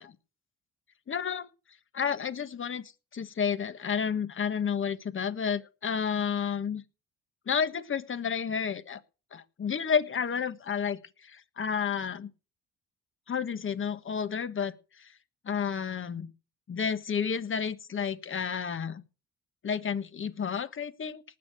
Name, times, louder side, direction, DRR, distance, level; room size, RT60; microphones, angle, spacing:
voice 1, 1.1-1.5 1.9-2.8 3.1-6.8 7.5-9.0 9.3-12.3 13.3-15.1 15.4-16.3 16.7-19.0 19.6-21.2, left 7 dB, 40° left, 12 dB, 1.5 m, -31 dB
19.0 x 6.8 x 6.4 m, 0.34 s
cardioid pair, 90°, 30 cm